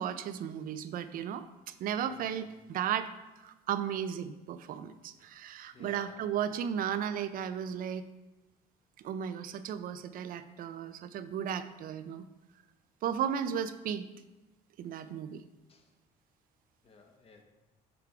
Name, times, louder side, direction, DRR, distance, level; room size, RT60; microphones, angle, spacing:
voice 1, 0.0-3.1 3.4-8.0 9.0-12.3 13.0-14.1 14.8-15.4, right 9 dB, 55° right, 12 dB, 0.4 m, -35 dB
voice 2, 2.0-2.5 5.7-6.3 15.7-15.9 16.8-17.4, left 3 dB, 35° left, 4 dB, 0.9 m, -55 dB
6.9 x 3.4 x 4.6 m, 1.1 s
cardioid pair, 110°, 17 cm